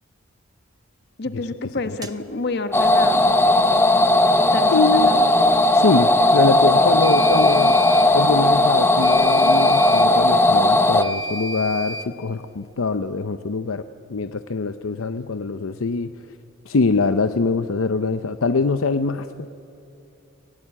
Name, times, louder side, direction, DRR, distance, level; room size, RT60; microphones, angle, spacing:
voice 1, 1.2-3.3 4.5-5.2, left 3 dB, 55° left, 9 dB, 1.3 m, -29 dB
sound 1, 2.0-2.2 7.0-8.1 9.0-10.1 11.0-12.1, right 1 dB, 20° right, 0.9 m, -32 dB
sound 2, 2.7-11.0, left 1 dB, 10° left, 0.9 m, -16 dB
voice 2, 4.7-5.2 5.7-7.8 8.1-13.8 14.1-16.1 16.6-19.5, left 4 dB, 75° left, 10 dB, 0.6 m, -23 dB
27.5 x 17.5 x 8.5 m, 2.7 s
head